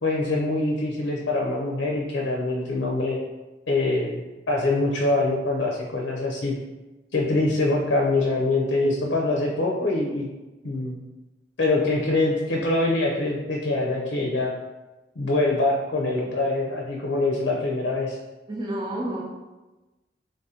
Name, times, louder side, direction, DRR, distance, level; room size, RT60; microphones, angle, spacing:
voice 1, 0.0-3.2 3.7-4.2 4.5-6.6 7.1-10.3 10.6-10.9 11.6-14.5 15.2-18.2, left 2 dB, 85° left, -1 dB, 0.6 m, -24 dB
voice 2, 18.5-19.2, right 1 dB, 25° right, -4 dB, 0.6 m, -29 dB
3.5 x 2.8 x 3.6 m, 1.1 s
head